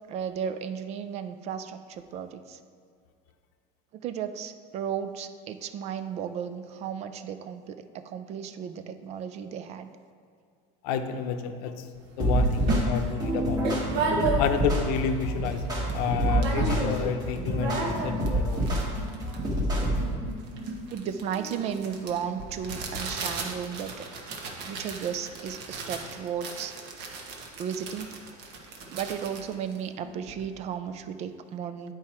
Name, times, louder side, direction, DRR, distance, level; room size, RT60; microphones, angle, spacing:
voice 1, 0.1-2.6 4.0-9.9 20.9-24.1 24.6-26.7 27.6-28.1 28.9-31.9, right 8 dB, 35° right, 9 dB, 0.4 m, -34 dB
voice 2, 10.8-11.7 12.2-13.6 14.4-15.6 15.9-18.7, left 7 dB, 75° left, 7 dB, 0.7 m, -30 dB
sound 1, 12.0-12.1 12.4-14.8 15.2-15.3 15.5-16.0 16.3-17.1 17.4-30.4, right 3 dB, 60° right, 1.2 m, -34 dB
sound 2, 12.2-20.2, right 1 dB, 20° right, 1.4 m, -27 dB
9.5 x 4.7 x 4.3 m, 2.3 s
cardioid pair, 160°, 19 cm